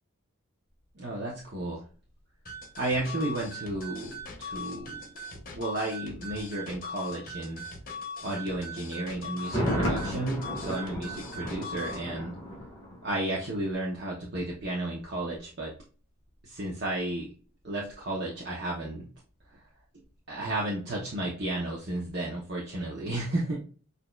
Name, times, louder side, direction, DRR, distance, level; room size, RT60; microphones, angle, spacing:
voice 1, 1.0-1.8 2.8-5.0 5.5-7.6 8.2-12.3 13.0-15.7 16.4-17.3 17.6-19.0 20.3-23.6, right 1 dB, 50° right, -3 dB, 0.9 m, -33 dB
sound 1, 2.5-12.0, left 1 dB, 40° left, 1.0 m, -41 dB
Thunder, 9.4-13.3 13.6-13.7, equal, 20° left, 1.6 m, -33 dB
6.4 x 2.7 x 2.3 m, 0.38 s
head